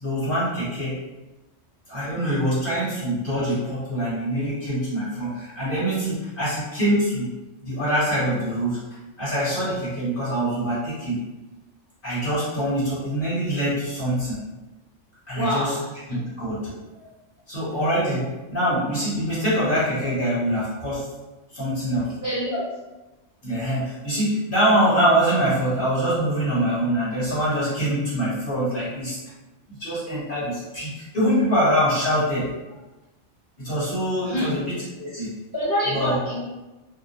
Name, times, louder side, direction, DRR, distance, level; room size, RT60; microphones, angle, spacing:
voice 1, 0.0-0.9 1.9-7.3 7.6-8.8 9.2-11.2 12.0-14.4 15.3-15.7 16.1-16.6 17.0-17.1 17.5-21.0 21.5-22.1 23.4-29.2 29.7-32.5 33.6-35.3 35.9-36.2, equal, 45° left, -9 dB, 1.2 m, -24 dB
voice 2, 15.3-16.2 22.1-22.6 34.2-34.5 35.5-36.4, left 1 dB, 15° right, -10 dB, 1.0 m, -26 dB
2.9 x 2.0 x 2.7 m, 1.1 s
omnidirectional pair, 1.3 m